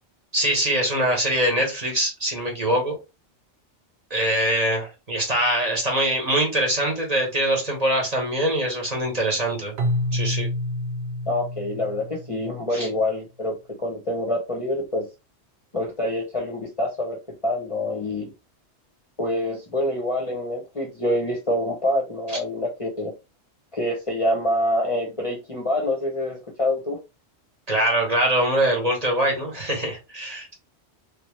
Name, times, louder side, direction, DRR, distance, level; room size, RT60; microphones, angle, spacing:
voice 1, 0.3-3.0 4.1-9.7 10.1-10.5 12.7-12.9 22.3-22.4 27.7-30.5, right 1 dB, 35° right, 1.3 m, -23 dB
Keyboard (musical), 9.8-12.7, left 1 dB, 65° right, 0.8 m, -28 dB
voice 2, 11.3-15.0 15.7-18.3 19.2-23.1 23.7-27.0, left 1 dB, 35° left, 0.8 m, -26 dB
3.4 x 2.9 x 3.1 m
omnidirectional pair, 1.2 m